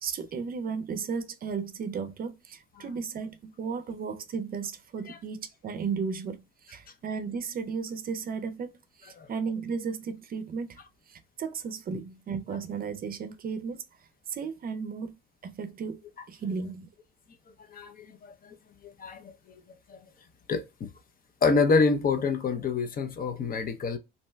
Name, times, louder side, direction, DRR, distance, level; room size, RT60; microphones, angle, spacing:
voice 1, 0.0-6.4 6.6-8.7 9.0-10.8 11.1-13.8 14.3-15.1 15.4-16.0 16.3-16.9, right 5 dB, 50° right, 0.5 m, -34 dB
voice 2, 20.5-20.9 21.4-24.0, left 4 dB, 45° left, 0.5 m, -26 dB
2.7 x 2.2 x 3.1 m
cardioid pair, 90°, 20 cm